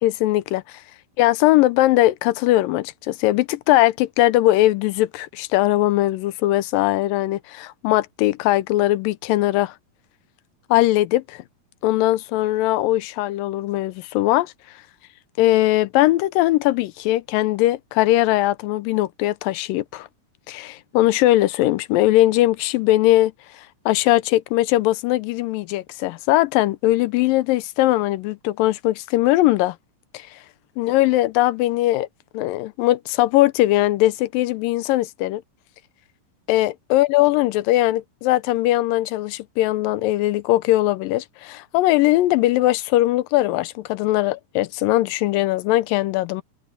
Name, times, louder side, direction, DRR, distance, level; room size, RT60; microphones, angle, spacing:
voice 1, 0.0-0.8 1.2-9.8 10.7-11.4 11.8-14.5 15.4-20.1 20.5-29.8 30.1-30.4 30.8-32.1 32.3-35.4 36.5-46.4, left 16 dB, 85° left, 2.3 m, -20 dB
omnidirectional pair, 4.0 m